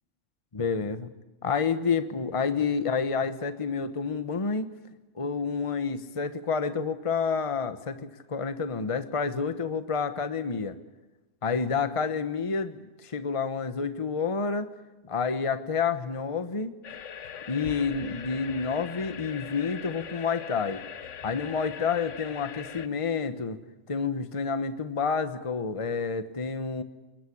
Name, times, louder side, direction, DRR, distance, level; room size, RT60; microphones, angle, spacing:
voice 1, 0.5-1.1 1.4-4.7 5.2-10.7 11.4-14.7 15.0-16.7 17.5-20.8 21.2-23.6 23.9-26.8, left 5 dB, 30° left, 10 dB, 1.1 m, -29 dB
sound 1, 16.8-22.9, left 8 dB, 85° left, 1.3 m, -41 dB
21.0 x 21.0 x 8.6 m, 1.1 s
omnidirectional pair, 1.2 m